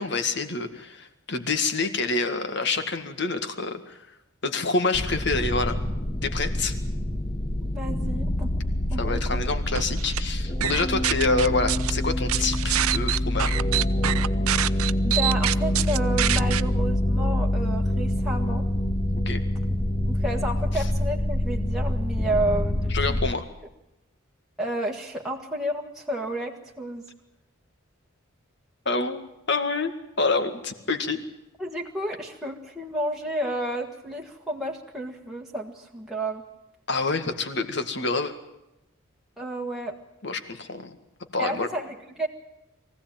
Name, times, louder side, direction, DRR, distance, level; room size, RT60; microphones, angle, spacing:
voice 1, 0.0-4.0 4.4-5.8 6.2-6.7 8.9-13.6 19.1-19.4 22.9-23.5 28.9-29.2 29.5-29.9 30.2-31.2 36.9-38.3 40.2-41.0 41.3-41.7, left 3 dB, 55° left, 8 dB, 2.0 m, -27 dB
sound 1, 4.9-23.3, left 1 dB, 25° left, 0.8 m, -26 dB
voice 2, 7.7-8.5 8.9-9.4 15.0-18.6 20.1-23.2 24.6-27.0 31.6-36.4 39.4-39.9 41.4-42.3, right 1 dB, ahead, -2 dB, 1.6 m, -31 dB
sound 2, 9.8-10.2 10.6-11.9 12.3-16.6, right 12 dB, 90° right, 0.7 m, -26 dB
23.0 x 16.0 x 9.1 m, 0.93 s
head